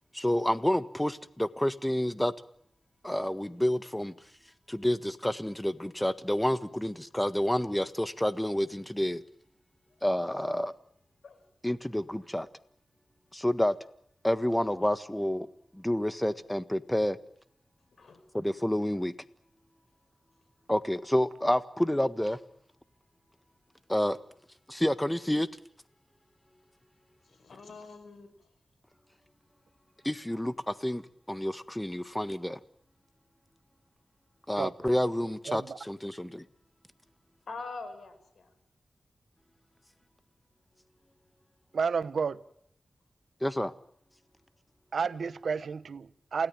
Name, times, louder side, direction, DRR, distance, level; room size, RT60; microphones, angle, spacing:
voice 1, 0.1-2.3 3.0-4.1 4.7-9.2 10.0-10.7 11.6-12.5 13.3-13.7 14.2-15.5 15.7-17.2 18.3-19.1 20.7-22.4 23.9-24.2 24.7-25.5 30.0-31.0 31.3-32.6 34.5-36.4 43.4-43.7, left 1 dB, 10° left, 1.5 m, -29 dB
voice 2, 27.3-28.3 37.5-38.5, left 4 dB, 80° left, 5.7 m, -44 dB
voice 3, 35.5-35.8 41.7-42.4 44.9-46.5, right 5 dB, 80° right, 1.2 m, -31 dB
29.0 x 17.5 x 9.0 m
cardioid pair, 65°, 0 cm